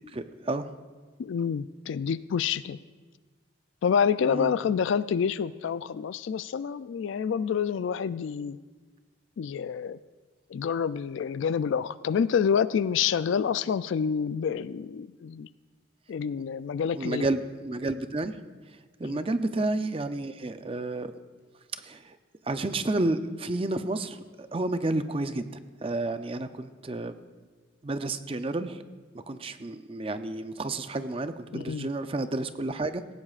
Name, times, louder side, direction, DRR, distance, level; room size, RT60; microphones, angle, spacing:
voice 1, 0.1-0.7 4.3-4.5 16.9-18.4 18.7-21.1 21.8-22.2 22.4-25.4 25.8-27.2 27.8-28.8 29.3-33.1, right 2 dB, 30° right, 9 dB, 0.5 m, -31 dB
voice 2, 1.2-2.8 3.8-8.6 9.4-10.0 10.5-15.5 16.1-17.2 19.0-19.2 31.5-31.9, left 7 dB, 70° left, 16 dB, 0.3 m, -28 dB
18.0 x 16.0 x 2.4 m, 1.4 s
head